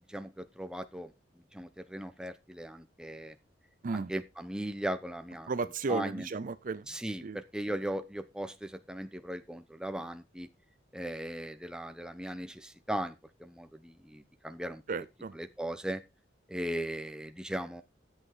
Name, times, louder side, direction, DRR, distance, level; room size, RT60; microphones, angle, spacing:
voice 1, 0.1-1.1 1.5-3.3 3.9-5.5 5.9-6.3 6.9-10.5 10.9-13.1 13.4-14.8 15.3-16.0 16.5-17.8, right 1 dB, 5° right, 0.9 m, -38 dB
voice 2, 5.5-6.9 7.2-7.4 14.9-15.3, right 4 dB, 45° right, 0.5 m, -34 dB
13.0 x 8.1 x 3.8 m
head